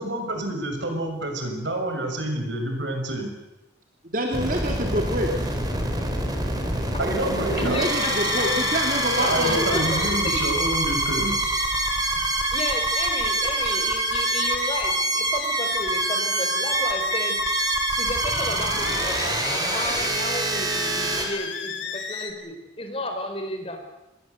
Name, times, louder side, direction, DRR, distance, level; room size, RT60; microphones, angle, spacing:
voice 1, 0.0-3.3 7.0-7.9 9.2-11.4, right 1 dB, 70° right, 4 dB, 6.6 m, -28 dB
voice 2, 4.0-5.3 7.6-9.9, equal, 45° right, 2 dB, 3.2 m, -26 dB
sound 1, 4.3-21.3, right 2 dB, 20° right, 4.4 m, -26 dB
sound 2, 7.6-22.3, left 6 dB, 75° left, 3.7 m, -32 dB
voice 3, 7.6-8.5 9.2-10.5 12.5-17.4 18.0-23.8, left 1 dB, 30° left, 5 dB, 4.4 m, -33 dB
28.0 x 21.0 x 8.2 m, 0.97 s
head